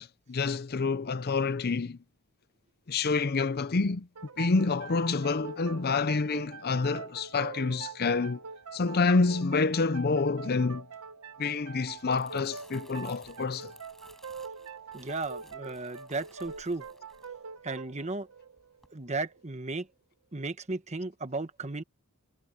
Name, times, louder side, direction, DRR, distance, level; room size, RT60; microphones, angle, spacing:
voice 1, 0.0-2.0 2.9-4.1 4.4-8.4 8.7-10.9 11.4-13.7, left 4 dB, 45° left, 0.6 m, -28 dB
sound 1, 4.1-19.5, right 5 dB, 70° right, 1.0 m, -44 dB
Crumpling crinkling, 11.9-18.2 18.6-18.9, equal, ahead, 4.8 m, -59 dB
voice 2, 14.9-16.8 17.6-18.3 18.9-19.9 20.3-21.8, right 3 dB, 30° right, 1.2 m, -35 dB
head